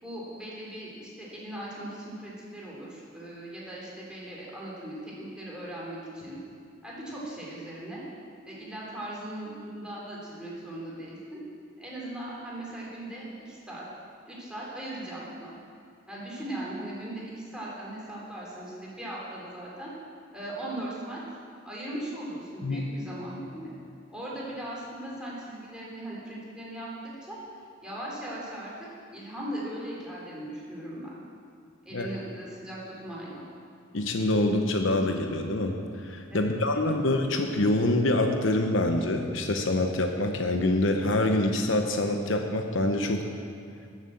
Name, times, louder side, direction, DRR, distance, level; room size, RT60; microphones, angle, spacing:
voice 1, 0.0-6.4 6.8-8.0 8.4-11.4 11.8-13.9 14.3-15.5 16.1-19.9 20.3-21.2 21.6-23.7 24.1-26.9 27.2-27.4 27.8-28.7 29.1-31.1 31.8-33.4 36.3-37.1, right 1 dB, 5° right, -6 dB, 3.4 m, -39 dB
voice 2, 33.9-43.3, left 1 dB, 70° left, 4 dB, 0.9 m, -26 dB
12.5 x 7.5 x 7.7 m, 2.3 s
head